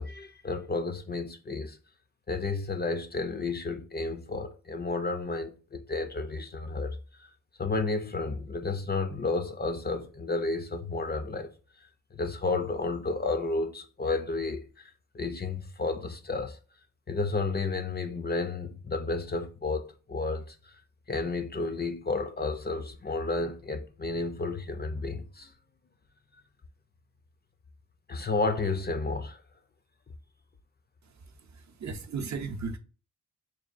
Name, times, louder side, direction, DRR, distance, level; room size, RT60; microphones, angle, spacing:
voice 1, 0.0-1.8 2.3-7.3 7.6-11.5 12.1-16.6 17.1-20.7 21.1-25.5 28.1-29.4, left 3 dB, 30° left, 0.4 m, -32 dB
voice 2, 31.0-32.8, right 4 dB, 55° right, 0.6 m, -37 dB
6.0 x 2.2 x 2.5 m
cardioid pair, 70°, 35 cm